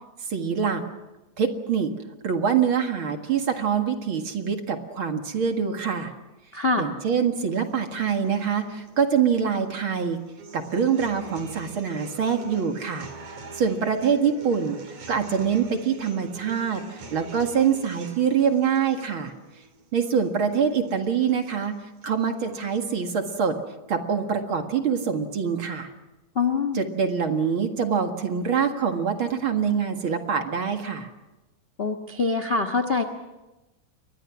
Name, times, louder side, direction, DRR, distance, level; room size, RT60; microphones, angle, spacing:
voice 1, 0.3-0.8 1.4-1.9 2.2-6.1 6.8-10.2 10.5-13.1 13.6-19.3 19.9-21.8 22.0-23.6 23.9-25.9 26.7-31.1, right 7 dB, 45° right, 5 dB, 2.3 m, -25 dB
voice 2, 6.5-6.9 26.3-26.8 31.8-33.0, left 4 dB, 45° left, 8 dB, 0.7 m, -24 dB
sound 1, 7.5-23.5, right 4 dB, 70° right, 4.4 m, -45 dB
29.5 x 23.0 x 6.1 m, 1.0 s
omnidirectional pair, 3.5 m